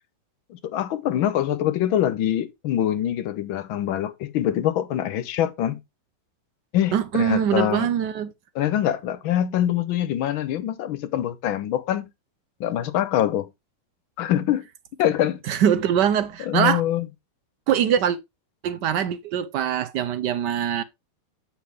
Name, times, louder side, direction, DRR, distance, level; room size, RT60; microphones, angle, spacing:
voice 1, 0.5-5.8 6.7-7.9 8.5-12.1 12.6-13.5 14.2-14.7 15.0-15.4 16.5-17.1, left 11 dB, 85° left, 1.6 m, -24 dB
voice 2, 6.9-8.3 15.4-16.8 17.7-18.2 18.6-20.8, right 9 dB, 70° right, 1.1 m, -23 dB
8.2 x 5.7 x 3.4 m
omnidirectional pair, 2.2 m